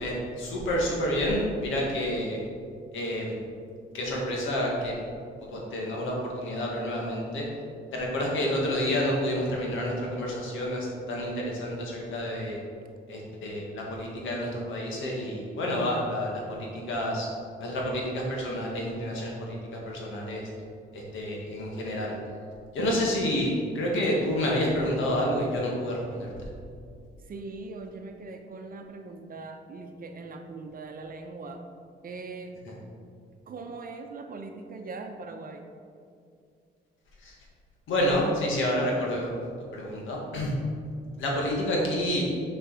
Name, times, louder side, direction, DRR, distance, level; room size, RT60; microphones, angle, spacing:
voice 1, 0.0-2.4 2.9-3.3 3.9-4.9 5.5-7.4 7.9-12.6 13.1-17.3 17.6-20.4 20.9-22.2 22.7-26.5 37.2-37.3 37.9-39.4 39.7-40.5 41.2-42.2, equal, 80° left, -2 dB, 1.8 m, -29 dB
voice 2, 27.2-31.6 32.0-32.6 33.5-35.6, right 3 dB, 45° right, 5 dB, 0.8 m, -41 dB
6.5 x 5.3 x 4.8 m, 2.3 s
cardioid pair, 90°, 20 cm